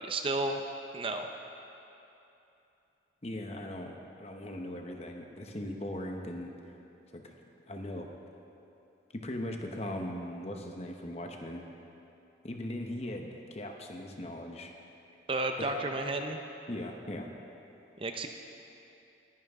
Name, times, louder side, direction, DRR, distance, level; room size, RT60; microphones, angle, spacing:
voice 1, 0.0-0.6 0.9-1.3 15.3-16.4 18.0-18.3, right 2 dB, 30° right, 5 dB, 0.6 m, -32 dB
voice 2, 3.2-6.5 7.1-7.3 7.7-8.1 9.1-11.7 12.4-14.7 15.6-15.7 16.7-17.3, left 1 dB, 35° left, 3 dB, 1.0 m, -39 dB
19.5 x 10.5 x 3.6 m, 2.8 s
head